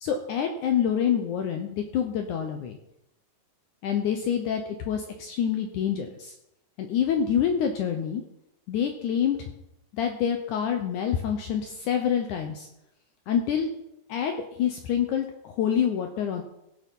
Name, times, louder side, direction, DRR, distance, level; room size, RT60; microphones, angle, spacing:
voice 1, 0.0-2.8 3.8-6.3 6.8-8.2 8.7-9.5 9.9-12.7 13.3-13.7 14.1-16.4, left 8 dB, 80° left, 5 dB, 1.8 m, -27 dB
16.5 x 6.3 x 5.4 m, 0.84 s
omnidirectional pair, 4.6 m